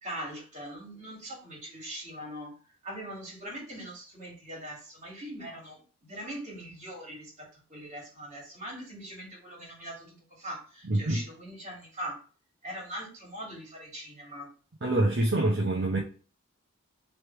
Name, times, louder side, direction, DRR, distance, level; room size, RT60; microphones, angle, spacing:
voice 1, 0.0-2.5 2.8-12.2 12.6-14.5, right 1 dB, 35° right, 2.1 m, -41 dB
voice 2, 10.8-11.2 14.8-16.0, right 1 dB, 55° right, 0.7 m, -25 dB
3.3 x 3.3 x 4.3 m
head